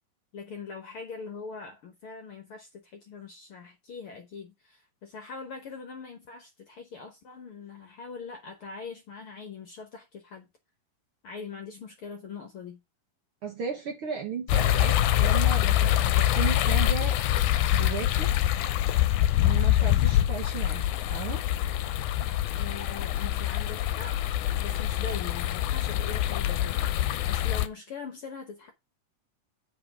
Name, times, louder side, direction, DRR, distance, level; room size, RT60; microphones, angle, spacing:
voice 1, 0.3-10.5 11.2-12.8 22.6-24.2 24.5-28.7, left 5 dB, 55° left, 1.6 m, -42 dB
voice 2, 13.4-17.2 17.7-18.3 19.4-21.4, right 6 dB, 55° right, 1.6 m, -35 dB
sound 1, 14.5-27.7, left 13 dB, 75° left, 2.0 m, -25 dB
7.9 x 5.4 x 4.9 m
omnidirectional pair, 3.8 m